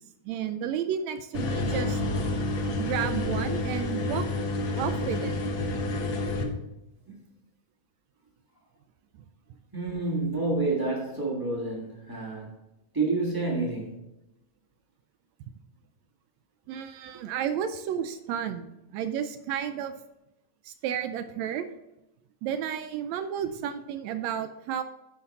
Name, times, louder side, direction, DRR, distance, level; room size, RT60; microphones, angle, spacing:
voice 1, 0.2-2.0 2.8-4.3 4.8-5.3 16.7-19.9 20.6-21.7 22.4-24.8, right 9 dB, 80° right, 9 dB, 1.6 m, -32 dB
sound 1, 1.3-6.4, left 2 dB, 60° left, 1.3 m, -29 dB
voice 2, 9.7-12.5 12.9-13.9 23.4-23.5, right 3 dB, 25° right, -4 dB, 0.4 m, -29 dB
9.4 x 5.9 x 4.1 m, 0.92 s
omnidirectional pair, 3.5 m